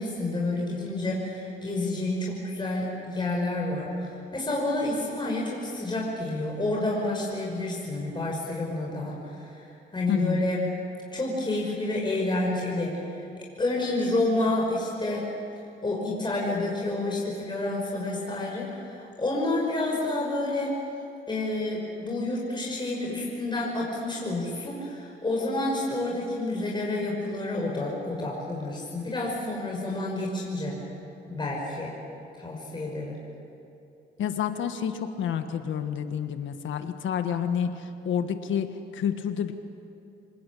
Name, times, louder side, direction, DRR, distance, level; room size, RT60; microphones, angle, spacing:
voice 1, 0.0-10.7 11.1-13.3 13.6-15.3 15.8-20.8 21.3-30.7 31.3-31.9 32.3-33.2, left 2 dB, 25° left, -2 dB, 5.6 m, -29 dB
voice 2, 10.1-10.5 34.2-38.7 38.9-39.5, left 8 dB, 75° left, 8 dB, 1.6 m, -29 dB
27.0 x 20.0 x 8.5 m, 2.7 s
cardioid pair, 90°, 20 cm